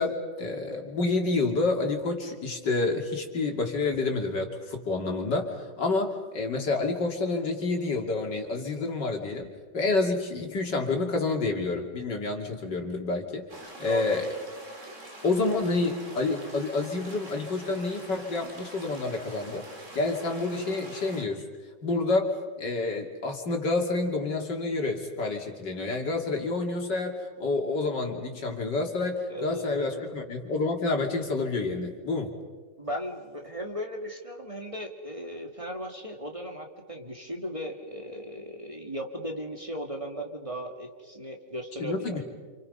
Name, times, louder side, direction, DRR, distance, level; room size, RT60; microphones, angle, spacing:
voice 1, 0.0-13.4 13.8-14.3 15.2-19.6 19.9-21.4 21.8-22.3 22.6-32.3 41.8-42.2, left 3 dB, 80° left, 2 dB, 3.4 m, -28 dB
sound 1, 13.5-21.2, right 1 dB, 45° right, 3.0 m, -45 dB
voice 2, 13.8-14.3 29.3-30.1 32.8-42.2, equal, 20° right, 2 dB, 2.2 m, -37 dB
28.5 x 28.5 x 5.5 m, 1.4 s
omnidirectional pair, 1.9 m